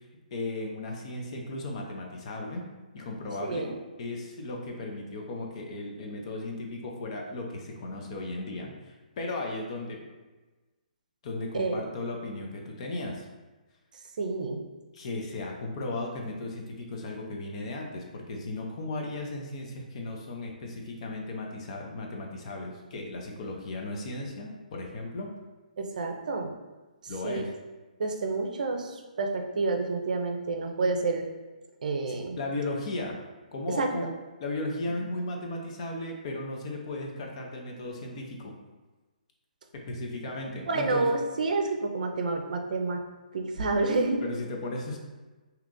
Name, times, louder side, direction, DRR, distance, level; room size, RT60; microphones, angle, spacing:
voice 1, 0.3-2.6 2.9-3.7 4.0-10.0 11.2-13.3 14.9-25.3 27.1-27.5 32.1-33.2 33.5-34.1 34.4-38.5 39.9-41.1 44.2-45.0, left 2 dB, 45° left, 1 dB, 0.6 m, -36 dB
voice 2, 3.4-3.8 11.5-11.8 14.2-14.6 25.8-26.5 27.2-27.4 28.0-31.3 31.8-32.4 33.8-33.9 35.0-35.1 40.7-43.0 43.3-44.2, right 3 dB, 65° right, 4 dB, 0.5 m, -29 dB
2.8 x 2.4 x 3.7 m, 1.2 s
hypercardioid pair, 145°, 5 cm